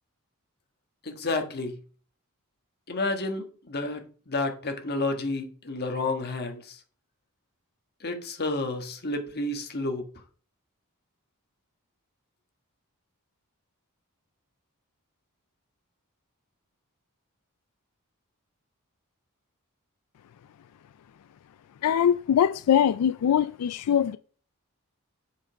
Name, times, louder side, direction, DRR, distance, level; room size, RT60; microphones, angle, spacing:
voice 1, 1.0-1.8 2.9-6.8 8.0-10.0, left 2 dB, 45° left, 1.5 m, -30 dB
voice 2, 21.8-24.2, left 9 dB, 85° left, 0.3 m, -22 dB
7.5 x 5.3 x 5.1 m
head